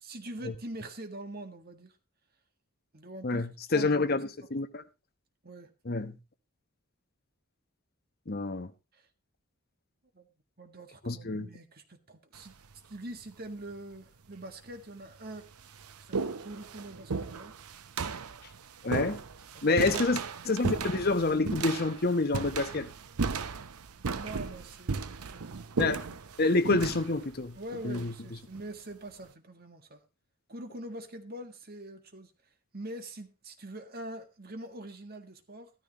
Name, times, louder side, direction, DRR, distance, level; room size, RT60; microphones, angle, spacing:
voice 1, 0.0-1.9 2.9-3.4 3.7-4.1 5.4-5.7 8.9-9.0 10.1-10.3 10.6-12.6 12.9-15.5 16.0-17.5 19.5-19.9 20.4-20.6 24.1-25.6 27.6-30.0 30.5-32.3 32.7-35.7, right 1 dB, 45° right, 1.7 m, -44 dB
voice 2, 3.2-4.8 5.8-6.2 8.3-8.7 11.0-11.5 18.8-19.2 19.6-20.2 20.4-22.9 25.8-26.0 26.4-27.6 27.8-28.1, left 3 dB, 45° left, 0.9 m, -28 dB
sound 1, 12.3-12.8 13.7-13.8 14.7-14.8 15.1-28.7, right 4 dB, 90° right, 0.8 m, -36 dB
14.0 x 13.5 x 3.0 m
head